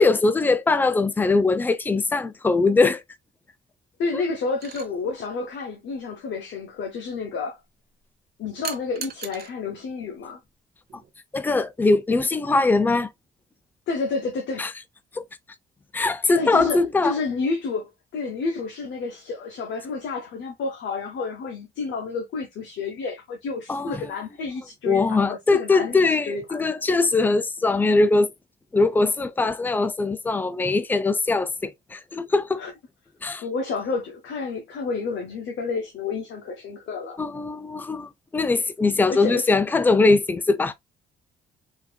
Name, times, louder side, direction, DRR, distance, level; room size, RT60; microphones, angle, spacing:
voice 1, 0.0-3.0 11.3-13.1 14.6-14.7 15.1-15.2 15.9-17.1 23.7-24.0 24.9-28.3 28.7-32.6 33.2-33.4 37.2-40.7, left 3 dB, 10° left, 0.4 m, -21 dB
voice 2, 4.0-7.6 8.4-10.4 13.9-14.7 16.3-26.6 32.6-32.7 33.4-37.2 39.1-39.5, left 4 dB, 70° left, 0.8 m, -30 dB
sound 1, 4.6-4.9 8.6-9.5 10.9-11.1, right 8 dB, 50° right, 0.7 m, -36 dB
4.0 x 2.6 x 2.2 m
cardioid pair, 90°, 20 cm